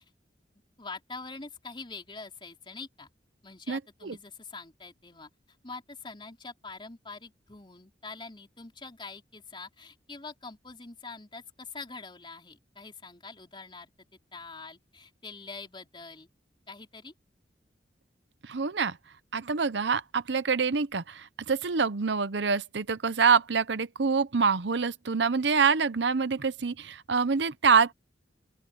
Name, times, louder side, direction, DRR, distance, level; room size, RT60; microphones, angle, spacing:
voice 1, 0.8-3.1 3.4-5.3 5.6-13.9 14.3-16.3 16.7-17.1, left 4 dB, 25° left, 4.0 m, -44 dB
voice 2, 3.7-4.2 18.4-19.0 19.3-27.9, right 5 dB, 70° right, 0.8 m, -26 dB
open air
head